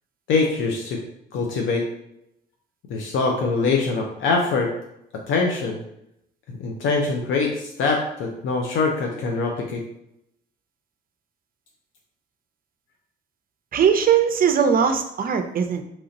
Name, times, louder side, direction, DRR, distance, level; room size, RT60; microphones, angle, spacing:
voice 1, 0.3-1.0 1.3-1.9 2.9-4.7 5.3-5.8 6.5-9.8, left 4 dB, 75° left, 1 dB, 0.5 m, -23 dB
voice 2, 13.7-15.8, right 7 dB, 45° right, 7 dB, 0.5 m, -20 dB
3.0 x 2.7 x 3.9 m, 0.80 s
cardioid pair, 90°, 20 cm